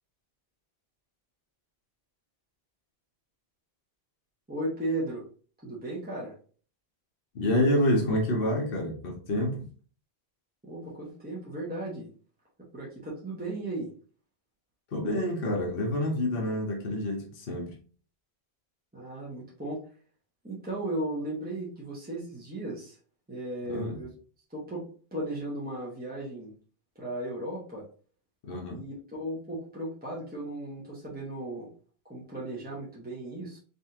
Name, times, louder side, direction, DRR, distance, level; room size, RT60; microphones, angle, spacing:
voice 1, 4.5-5.2 5.6-6.3 10.6-12.1 12.7-13.9 18.9-19.8 20.4-23.0 23.3-24.1 24.5-24.9 25.1-26.5 26.9-27.8 28.7-31.7 32.0-33.6, right 1 dB, 10° right, -6 dB, 1.3 m, -36 dB
voice 2, 7.3-9.7 14.9-17.7 23.7-23.9 28.4-28.8, left 1 dB, 60° left, -1 dB, 1.1 m, -28 dB
4.0 x 3.6 x 2.8 m, 0.41 s
omnidirectional pair, 1.1 m